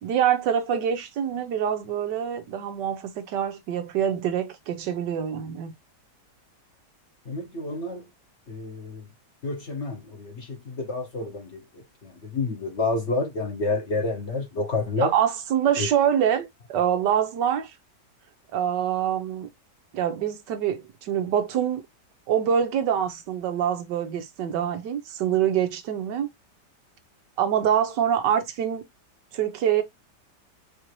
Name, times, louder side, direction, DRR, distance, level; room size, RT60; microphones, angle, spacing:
voice 1, 0.0-5.7 15.0-17.7 18.5-19.5 19.9-21.8 22.3-26.3 27.4-28.9 29.3-29.8, right 9 dB, 90° right, 1.4 m, -25 dB
voice 2, 7.3-8.1 8.5-9.1 9.4-15.1 15.8-15.9, left 3 dB, 45° left, 1.1 m, -29 dB
4.7 x 2.6 x 3.0 m
omnidirectional pair, 1.9 m